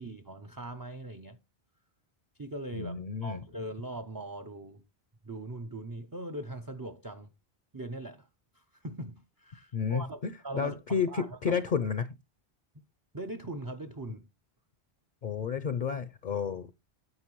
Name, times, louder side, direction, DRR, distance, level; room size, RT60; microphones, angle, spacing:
voice 1, 0.0-1.4 2.4-4.8 5.2-7.3 7.7-8.3 8.5-11.6 13.1-14.3, right 1 dB, 30° right, 0.5 m, -41 dB
voice 2, 2.7-3.4 9.7-12.1 15.2-16.7, left 6 dB, 55° left, 0.7 m, -31 dB
9.6 x 8.1 x 3.0 m
omnidirectional pair, 1.1 m